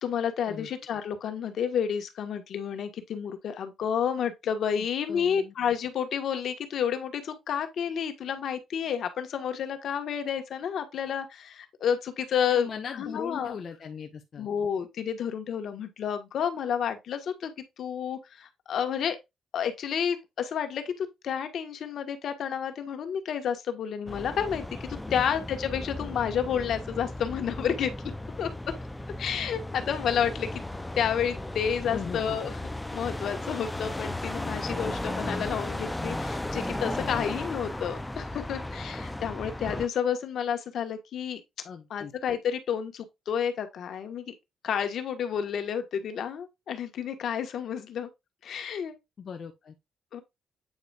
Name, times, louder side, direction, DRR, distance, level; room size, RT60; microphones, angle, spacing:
voice 1, 0.0-12.7 12.9-13.5 14.4-17.5 17.8-19.2 19.5-27.9 28.4-28.5 29.2-30.6 30.9-32.5 32.9-41.4 41.9-44.3 44.6-48.1 48.4-49.0 50.1-50.2, left 8 dB, 65° left, 1.5 m, -30 dB
voice 2, 4.7-5.5 12.5-14.5 25.1-25.2 31.8-32.5 36.9-37.2 37.6-37.7 41.6-42.1 49.2-49.7, left 6 dB, 50° left, 1.2 m, -39 dB
sound 1, 24.1-39.9, left 1 dB, 10° left, 0.7 m, -35 dB
8.8 x 5.1 x 2.5 m
cardioid pair, 90°, 0 cm